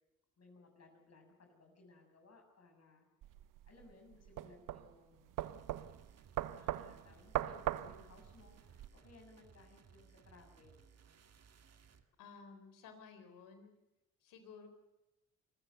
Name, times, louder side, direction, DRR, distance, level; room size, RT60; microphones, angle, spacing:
voice 1, 0.4-3.1 3.6-5.3 6.5-10.9, left 3 dB, 50° left, 4 dB, 6.9 m, -62 dB
knock on wood, 3.2-8.9, right 12 dB, 75° right, 0.9 m, -41 dB
sound 1, 5.4-12.1, right 6 dB, 50° right, 2.0 m, -63 dB
voice 2, 12.2-13.7 14.2-14.7, left 5 dB, 85° left, 8 dB, 3.9 m, -55 dB
26.5 x 15.0 x 8.0 m, 0.94 s
supercardioid pair, 60°, 32 cm